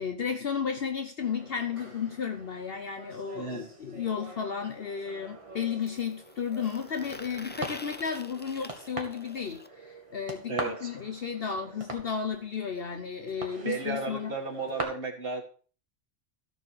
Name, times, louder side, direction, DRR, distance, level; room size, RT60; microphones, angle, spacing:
voice 1, 0.0-14.3, left 6 dB, 55° left, 6 dB, 1.1 m, -33 dB
sound 1, 1.2-14.8, right 2 dB, 30° right, 1.9 m, -44 dB
voice 2, 3.3-3.7 10.5-10.9 13.6-15.4, right 3 dB, 50° right, 3 dB, 2.1 m, -34 dB
sound 2, 3.8-3.9 5.8-9.7 11.6-11.7 12.0-12.1 12.3-12.5 13.4-13.5, left 2 dB, 15° left, 0.3 m, -47 dB
14.0 x 6.9 x 4.7 m, 0.40 s
omnidirectional pair, 1.2 m